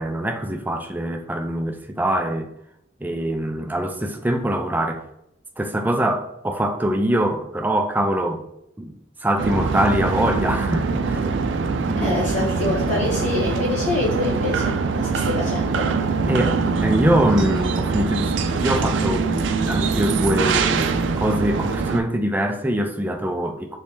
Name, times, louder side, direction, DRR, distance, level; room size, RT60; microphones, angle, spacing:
voice 1, 0.0-2.5 3.0-5.1 5.6-8.4 8.8-11.3 11.9-12.1 12.4-12.8 16.3-20.9 21.2-23.8, right 1 dB, 10° right, 0.3 m, -23 dB
sound 1, 9.4-22.0, right 4 dB, 90° right, 0.4 m, -23 dB
voice 2, 12.0-15.9, left 2 dB, 45° left, 1.0 m, -25 dB
3.5 x 3.1 x 2.7 m
head